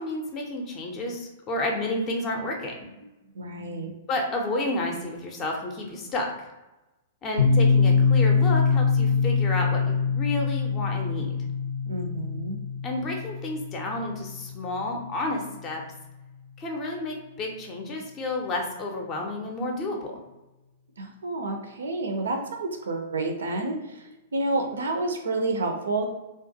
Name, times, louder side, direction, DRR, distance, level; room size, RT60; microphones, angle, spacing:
voice 1, 0.0-2.7 4.1-6.5 7.2-11.3 12.8-15.8 16.6-20.1, left 2 dB, 25° left, 1 dB, 0.5 m, -31 dB
voice 2, 3.3-3.9 11.9-12.6 21.0-24.0 24.3-26.1, right 2 dB, 65° right, 4 dB, 0.4 m, -29 dB
Piano, 7.4-14.8, left 5 dB, 70° left, 0.6 m, -24 dB
2.4 x 2.2 x 2.6 m, 1.0 s
figure-of-eight pair, 105°, 0 cm